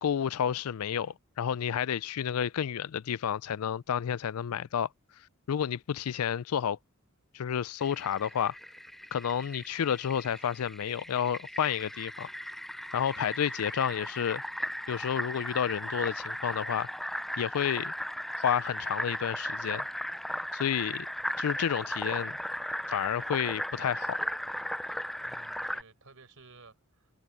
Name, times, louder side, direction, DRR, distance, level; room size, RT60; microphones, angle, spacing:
voice 1, 0.0-4.9 5.5-6.8 7.3-8.5 9.1-12.3 12.9-14.4 14.9-16.9 17.4-17.9 18.4-19.9 20.5-21.1 21.4-22.4 22.9-24.2, left 8 dB, 85° left, 0.4 m, -30 dB
Fill (with liquid), 7.8-25.8, equal, ahead, 0.3 m, -37 dB
voice 2, 25.2-27.1, right 3 dB, 70° right, 4.4 m, -55 dB
head